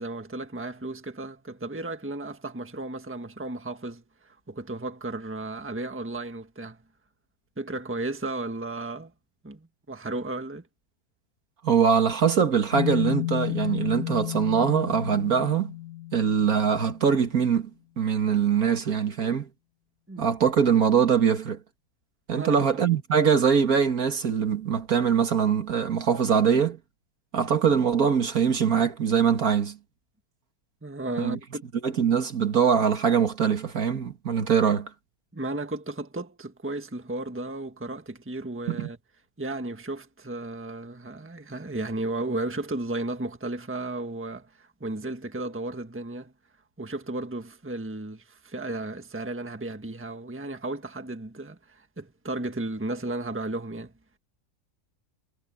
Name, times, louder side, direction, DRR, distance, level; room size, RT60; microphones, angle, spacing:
voice 1, 0.0-6.8 7.6-9.1 9.4-10.7 20.1-20.3 22.3-22.7 30.8-31.7 35.3-39.0 39.4-46.3 46.8-53.9, right 2 dB, 10° right, 1.4 m, -34 dB
voice 2, 11.6-15.7 16.1-17.7 18.0-19.5 20.2-21.6 22.3-26.8 27.3-29.8 31.2-31.4 31.8-34.9 38.7-38.9, right 7 dB, 65° right, 2.2 m, -23 dB
sound 1, 12.7-17.0, left 15 dB, 80° left, 1.2 m, -32 dB
omnidirectional pair, 1.7 m